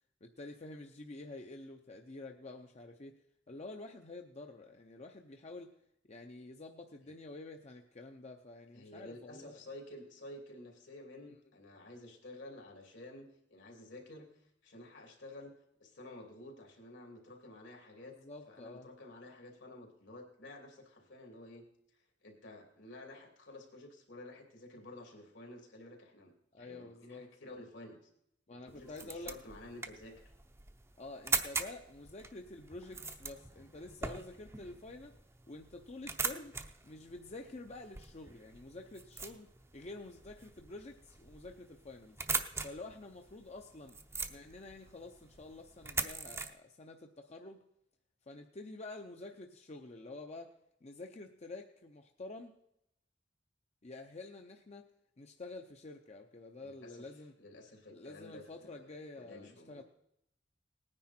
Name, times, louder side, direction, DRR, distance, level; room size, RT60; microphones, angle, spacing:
voice 1, 0.2-3.2 3.5-5.8 6.1-9.6 11.3-11.4 18.0-18.9 26.5-27.3 28.5-29.3 31.0-35.2 35.5-36.5 36.8-42.2 42.6-44.0 44.3-47.6 48.3-52.6 53.8-54.9 55.2-57.3 57.9-59.8, left 2 dB, 35° left, 4 dB, 0.7 m, -49 dB
voice 2, 8.7-14.3 14.6-18.2 18.5-21.7 22.2-28.0 28.7-30.2 56.6-57.1 57.4-59.8, left 1 dB, 75° left, 2 dB, 3.0 m, -51 dB
sound 1, 28.7-46.5, right 4 dB, 15° right, 0.7 m, -42 dB
18.5 x 9.8 x 4.4 m, 0.79 s
head